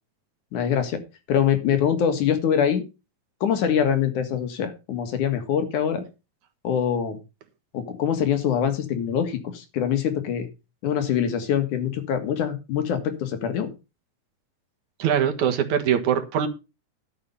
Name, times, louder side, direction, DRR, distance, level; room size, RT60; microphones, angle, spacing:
voice 1, 0.5-1.0 1.3-2.8 3.4-6.0 6.6-7.2 7.7-10.5 10.8-13.7, left 8 dB, 80° left, 3.2 m, -24 dB
voice 2, 15.0-16.5, right 9 dB, 75° right, 2.8 m, -22 dB
12.5 x 6.9 x 5.4 m
omnidirectional pair, 3.5 m